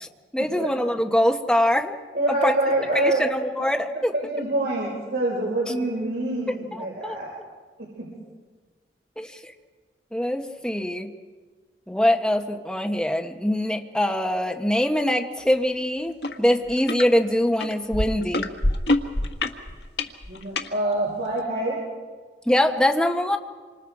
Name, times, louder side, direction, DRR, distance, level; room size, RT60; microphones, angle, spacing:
voice 1, 0.3-1.9 2.4-2.5 2.9-4.1 6.7-7.2 9.2-9.5 10.1-11.1 11.9-18.5 22.5-23.4, left 1 dB, 5° left, 3 dB, 1.4 m, -23 dB
voice 2, 2.1-3.2 4.1-7.3 7.8-8.1 20.3-21.8, right 2 dB, 70° right, -4 dB, 6.4 m, -26 dB
sound 1, 16.2-16.4 16.7-17.1 17.6-20.7 21.4-21.5, left 2 dB, 70° left, 1.7 m, -25 dB
28.0 x 26.0 x 4.9 m, 1.4 s
head